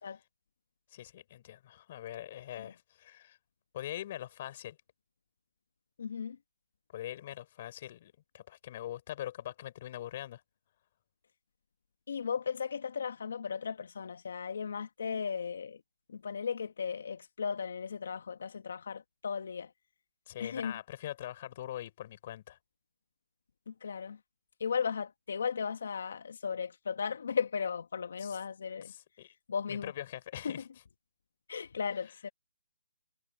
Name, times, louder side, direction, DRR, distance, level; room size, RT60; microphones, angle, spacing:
voice 1, 0.9-3.4 3.7-4.8 6.9-10.4 20.3-22.6 28.2-28.4 28.8-29.3 29.7-30.6, left 12 dB, 40° left, 4.8 m, -43 dB
voice 2, 6.0-6.4 12.1-15.8 16.1-19.7 20.4-20.7 23.7-24.2 24.6-28.9 29.5-29.9 30.4-30.6 31.5-32.3, left 6 dB, 65° left, 1.5 m, -36 dB
hypercardioid pair, 155°, 0 cm